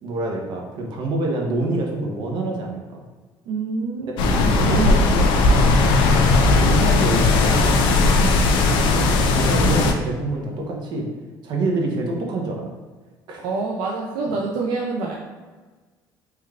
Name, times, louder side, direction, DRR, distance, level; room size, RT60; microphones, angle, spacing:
voice 1, 0.0-3.0 4.6-5.7 6.5-7.9 8.8-9.1 9.3-11.1 11.4-12.7 13.3-13.5, right 2 dB, 60° right, 0 dB, 0.8 m, -26 dB
voice 2, 3.5-4.7 8.2-8.4 13.4-15.1, right 3 dB, 80° right, -2 dB, 0.4 m, -27 dB
sound 1, 4.2-9.9, left 3 dB, 75° left, 0.4 m, -17 dB
3.3 x 3.2 x 2.4 m, 1.4 s
cardioid pair, 100°, 8 cm